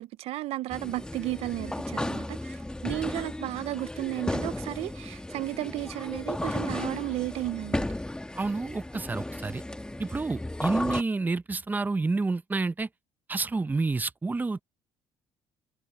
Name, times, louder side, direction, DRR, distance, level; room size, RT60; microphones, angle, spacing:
voice 1, 0.0-7.9, right 17 dB, 70° right, 0.4 m, -34 dB
sound 1, 0.7-11.0, left 1 dB, 10° left, 1.5 m, -34 dB
voice 2, 8.4-9.6 10.0-12.9 13.3-14.6, right 3 dB, 15° right, 0.7 m, -29 dB
cardioid pair, 100°, 11 cm